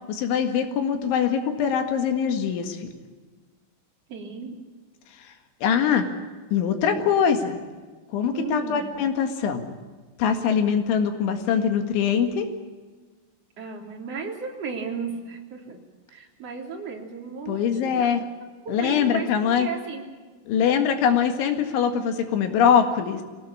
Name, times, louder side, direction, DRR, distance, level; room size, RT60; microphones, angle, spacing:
voice 1, 0.1-2.9 5.6-6.1 6.5-7.6 8.1-9.7 10.2-12.5 17.5-18.2 18.7-19.7 20.5-23.2, left 7 dB, 75° left, 7 dB, 4.1 m, -23 dB
voice 2, 4.1-4.6 7.0-7.1 8.3-8.8 13.6-15.8 16.1-18.3 18.6-20.0, right 5 dB, 35° right, 1 dB, 3.8 m, -34 dB
23.0 x 18.0 x 8.6 m, 1.4 s
omnidirectional pair, 5.6 m